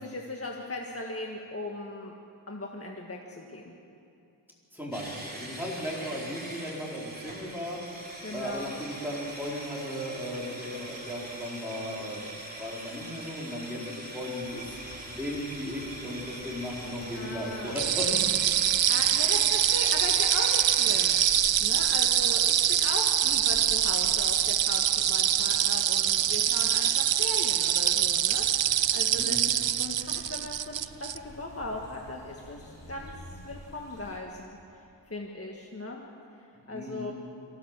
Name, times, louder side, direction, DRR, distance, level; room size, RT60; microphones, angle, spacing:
voice 1, 0.0-2.1 2.5-3.7 6.0-6.1 8.2-8.7 17.1-17.8 18.9-21.2 21.6-29.4 29.8-32.6 32.9-33.1 33.4-34.6 35.1-36.0 36.7-37.1, left 2 dB, 30° left, 0 dB, 1.7 m, -38 dB
voice 2, 4.7-8.0 8.3-12.3 12.6-14.6 15.2-18.2 29.1-29.5 36.7-37.1, left 1 dB, 5° right, -4 dB, 4.7 m, -36 dB
sound 1, 4.9-21.3, right 1 dB, 20° right, 3.5 m, -43 dB
sound 2, 14.4-34.2, left 1 dB, 75° left, 7.1 m, -51 dB
sound 3, 17.8-31.2, right 10 dB, 85° right, 0.6 m, -24 dB
23.5 x 16.0 x 7.6 m, 2.6 s
wide cardioid pair, 80°, 44 cm